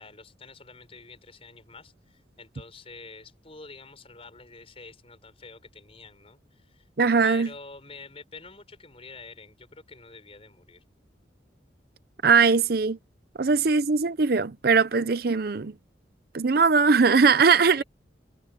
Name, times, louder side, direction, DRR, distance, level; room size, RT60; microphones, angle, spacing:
voice 1, 0.0-6.9 7.2-10.8 13.4-13.6 17.7-17.8, left 3 dB, 30° left, 6.0 m, -47 dB
voice 2, 7.0-7.5 12.2-13.0 13.4-15.7 16.3-17.8, right 5 dB, 55° right, 0.6 m, -20 dB
head